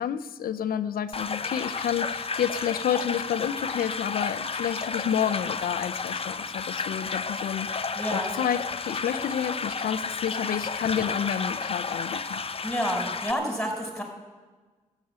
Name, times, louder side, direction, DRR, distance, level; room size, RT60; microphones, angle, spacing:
voice 1, 0.0-7.8 8.1-12.4, left 9 dB, 75° left, 11 dB, 0.7 m, -30 dB
sound 1, 1.1-13.3, left 4 dB, 40° left, 0.7 m, -32 dB
voice 2, 7.9-8.3 12.6-14.0, equal, 5° left, 1 dB, 5.0 m, -29 dB
13.5 x 7.3 x 8.9 m, 1.3 s
supercardioid pair, 45°, 15 cm